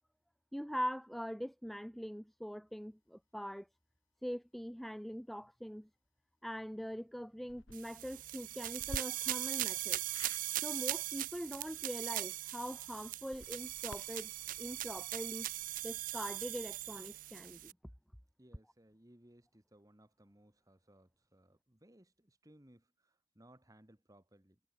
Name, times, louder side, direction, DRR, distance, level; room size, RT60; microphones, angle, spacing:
voice 1, 0.5-3.7 4.2-5.9 6.4-10.0 10.6-14.3 14.6-15.5 15.8-17.7, equal, ahead, 0.6 m, -42 dB
sound 1, 7.4-7.8 8.8-9.0 10.1-10.4 13.2-16.0, left 1 dB, 80° left, 2.4 m, -50 dB
sound 2, 7.7-17.7, right 16 dB, 40° right, 0.3 m, -40 dB
voice 2, 18.4-24.6, right 1 dB, 15° right, 1.6 m, -63 dB
head